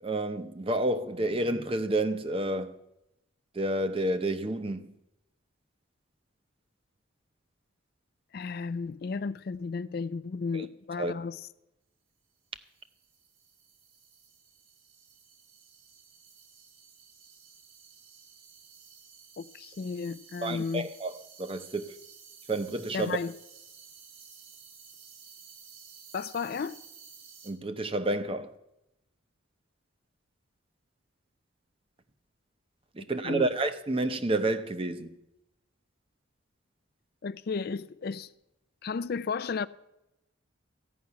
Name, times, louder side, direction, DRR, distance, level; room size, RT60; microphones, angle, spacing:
voice 1, 0.0-2.8 3.5-4.9 10.5-10.7 11.0-11.1 20.4-21.9 22.5-23.2 27.4-28.5 33.0-35.1, right 2 dB, 25° right, 0.7 m, -30 dB
voice 2, 8.3-11.4 19.4-20.9 22.9-23.3 26.1-26.8 33.2-33.5 37.2-38.3 38.8-39.7, left 5 dB, 45° left, 0.3 m, -33 dB
sound 1, 12.6-27.5, right 6 dB, 85° right, 2.4 m, -53 dB
14.5 x 5.9 x 9.5 m
head